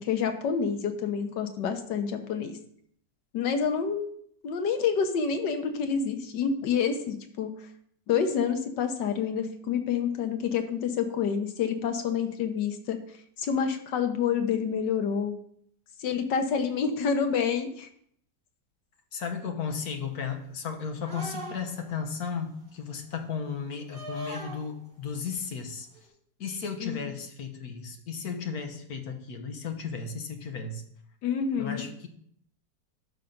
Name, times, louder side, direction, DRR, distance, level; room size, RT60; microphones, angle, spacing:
voice 1, 0.0-2.6 3.3-4.1 4.4-7.5 8.1-13.0 13.4-15.3 16.0-17.9 26.8-27.1 31.2-31.8, left 6 dB, 85° left, 7 dB, 1.6 m, -28 dB
voice 2, 19.1-25.9 26.4-30.8 31.6-32.1, left 6 dB, 60° left, 5 dB, 1.5 m, -35 dB
sound 1, 21.0-21.9 23.9-24.6 25.9-26.1, right 1 dB, 45° right, 4.3 m, -39 dB
12.0 x 5.7 x 3.9 m, 0.66 s
omnidirectional pair, 1.9 m